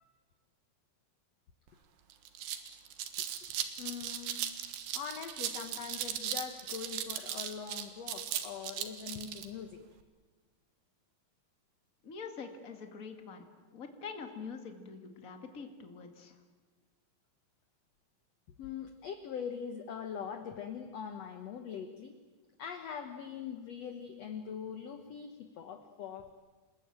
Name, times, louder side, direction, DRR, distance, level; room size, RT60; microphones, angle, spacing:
sound 1, 1.7-1.8 2.1-9.5, right 10 dB, 90° right, 3.6 m, -38 dB
voice 1, 3.8-4.4 4.9-9.8 18.6-22.2 22.6-26.3, left 7 dB, 60° left, 7 dB, 1.7 m, -42 dB
voice 2, 12.0-13.4 13.7-16.4, left 5 dB, 25° left, 5 dB, 2.0 m, -45 dB
28.5 x 20.5 x 9.0 m, 1.3 s
omnidirectional pair, 4.5 m